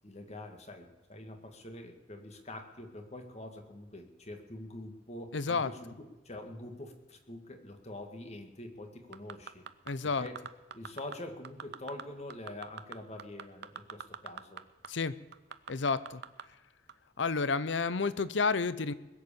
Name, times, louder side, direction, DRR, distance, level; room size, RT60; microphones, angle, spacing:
voice 1, 0.0-9.6 10.0-10.4 10.7-14.6, left 1 dB, 35° left, 5 dB, 2.1 m, -45 dB
voice 2, 5.3-5.7 9.9-10.3 14.9-15.1 15.7-16.2 17.2-18.9, left 4 dB, 70° left, 16 dB, 0.7 m, -30 dB
sound 1, 9.1-9.9 10.3-11.1 11.4-12.0 12.3-14.6 14.8-14.9 15.3-16.4 16.9-17.0, right 7 dB, 65° right, 0.8 m, -42 dB
21.0 x 8.0 x 7.0 m, 1.1 s
head